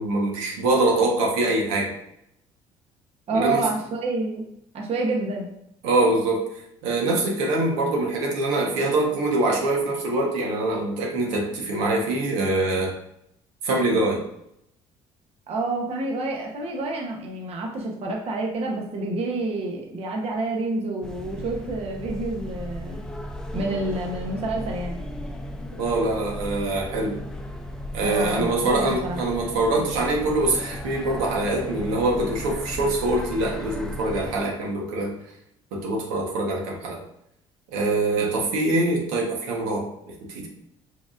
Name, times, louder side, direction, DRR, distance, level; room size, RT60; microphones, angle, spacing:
voice 1, 0.0-1.9 3.3-3.7 5.8-6.5 6.8-12.9 13.6-14.2 25.8-27.2 27.9-35.1 35.7-37.0 37.7-39.9 40.3-40.5, right 2 dB, 85° right, -1 dB, 1.1 m, -24 dB
voice 2, 3.3-4.4 4.7-5.5 15.5-23.0 23.5-25.0 28.0-29.2 38.2-38.4, right 2 dB, 50° right, 0 dB, 1.0 m, -28 dB
sound 1, 21.0-34.4, left 1 dB, 5° left, 0.6 m, -35 dB
4.8 x 3.6 x 2.5 m, 0.78 s
supercardioid pair, 75°, 13 cm